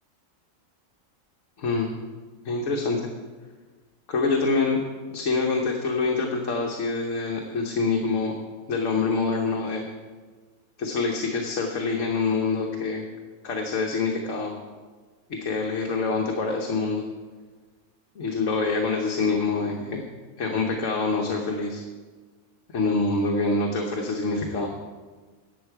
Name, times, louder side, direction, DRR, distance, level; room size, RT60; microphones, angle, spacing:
voice 1, 1.6-1.9 2.4-3.1 4.1-4.8 5.1-8.3 8.7-9.8 10.8-13.0 13.4-14.5 15.3-17.0 18.2-20.0 20.4-21.8 22.7-24.7, left 3 dB, 65° left, 1 dB, 1.3 m, -25 dB
11.5 x 8.2 x 4.6 m, 1.4 s
omnidirectional pair, 1.5 m